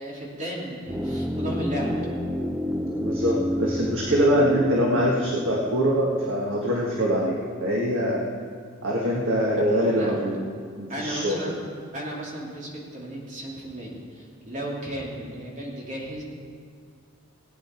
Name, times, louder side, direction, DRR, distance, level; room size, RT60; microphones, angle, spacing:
voice 1, 0.0-1.9 9.5-10.1 10.9-11.6 11.9-16.2, equal, 35° right, -4 dB, 2.8 m, -34 dB
sound 1, 0.9-6.9 7.1-7.2, equal, 10° right, 0.6 m, -30 dB
voice 2, 3.0-8.2 8.8-10.4 10.8-11.5, equal, 70° right, -3 dB, 1.6 m, -23 dB
18.0 x 9.5 x 4.4 m, 2.1 s
head